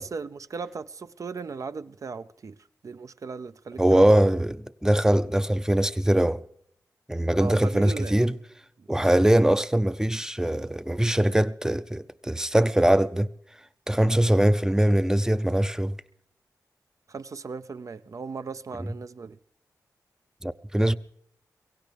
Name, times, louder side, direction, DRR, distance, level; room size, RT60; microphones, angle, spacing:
voice 1, 0.0-2.6 2.8-4.3 7.4-8.2 8.8-8.9 17.1-19.4, right 4 dB, 55° right, 0.5 m, -37 dB
voice 2, 3.8-6.4 7.1-8.4 8.9-13.3 13.9-15.9 18.8-18.9 20.4-21.0, right 1 dB, 10° right, 0.5 m, -22 dB
23.0 x 16.5 x 3.4 m
cardioid pair, 70°, 7 cm